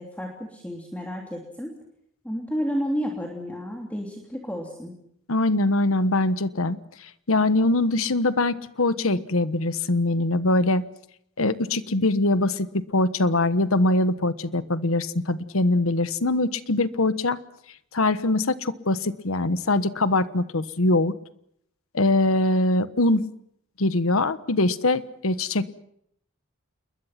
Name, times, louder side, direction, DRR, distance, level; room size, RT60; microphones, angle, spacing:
voice 1, 0.0-1.7 2.2-4.9, equal, 5° left, 0 dB, 3.2 m, -31 dB
voice 2, 5.3-10.8 11.4-17.4 17.9-21.1 21.9-23.3 23.8-25.7, left 2 dB, 85° left, 13 dB, 1.3 m, -23 dB
28.5 x 22.0 x 5.9 m, 0.70 s
head